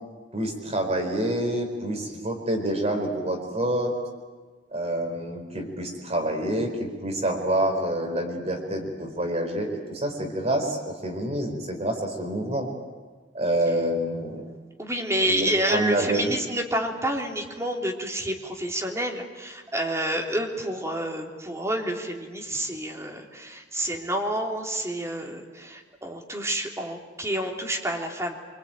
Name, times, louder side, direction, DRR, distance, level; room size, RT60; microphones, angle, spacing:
voice 1, 0.3-3.9 4.7-12.7 13.3-14.5 15.3-16.3, right 1 dB, 35° right, 2 dB, 4.7 m, -27 dB
voice 2, 14.8-28.4, right 1 dB, 15° right, 0 dB, 3.5 m, -29 dB
26.5 x 25.0 x 9.1 m, 1.4 s
head